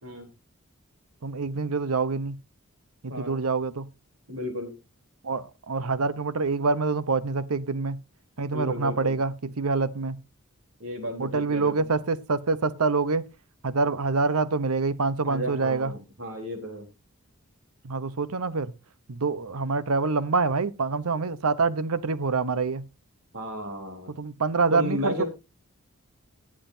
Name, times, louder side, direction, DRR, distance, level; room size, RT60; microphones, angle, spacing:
voice 1, 1.2-2.4 3.0-3.9 5.2-8.0 8.4-10.2 11.2-13.2 13.6-15.9 17.8-18.7 19.1-22.8 24.2-25.2, right 4 dB, 85° right, 0.9 m, -26 dB
voice 2, 3.1-3.4 4.3-4.7 8.5-9.2 10.8-11.9 15.2-16.9 23.3-24.1 24.7-25.3, left 1 dB, 70° right, 3.6 m, -33 dB
19.0 x 7.5 x 2.7 m
head